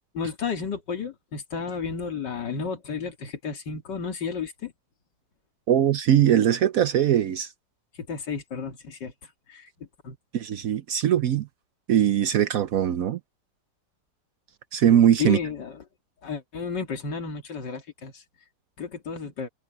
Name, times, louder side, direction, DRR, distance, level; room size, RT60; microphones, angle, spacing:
voice 1, 0.1-4.7 7.9-10.2 15.2-15.8 16.2-18.2 18.8-19.5, left 5 dB, 75° left, 2.9 m, -32 dB
voice 2, 5.7-7.5 10.3-11.5 11.9-13.2 14.7-15.4, right 10 dB, 60° right, 1.0 m, -21 dB
omnidirectional pair, 1.9 m